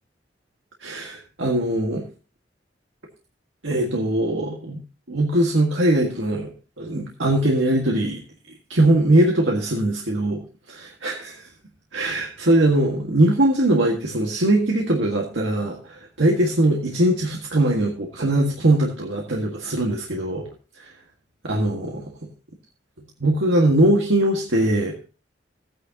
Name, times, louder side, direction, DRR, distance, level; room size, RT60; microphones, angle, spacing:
voice 1, 0.8-2.0 3.6-4.8 5.1-6.5 6.8-8.2 8.7-10.4 10.7-11.2 11.9-20.5 20.8-20.9 21.5-22.0 23.2-25.0, right 1 dB, 85° right, 0 dB, 1.8 m, -21 dB
15.0 x 9.9 x 2.9 m, 0.34 s
head